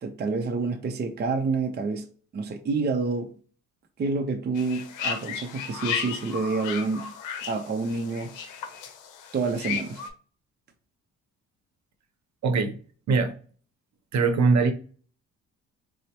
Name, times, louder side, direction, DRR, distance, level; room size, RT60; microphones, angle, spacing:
voice 1, 0.0-2.1 2.3-3.3 4.0-7.1 7.5-8.3 9.3-10.0, right 4 dB, 35° right, 0.5 m, -28 dB
sound 1, 4.5-10.1, left 6 dB, 90° left, 0.6 m, -34 dB
voice 2, 12.4-12.8 13.1-13.3 14.1-14.7, right 4 dB, 65° right, 0.8 m, -21 dB
4.3 x 2.0 x 2.8 m
cardioid pair, 90°, 30 cm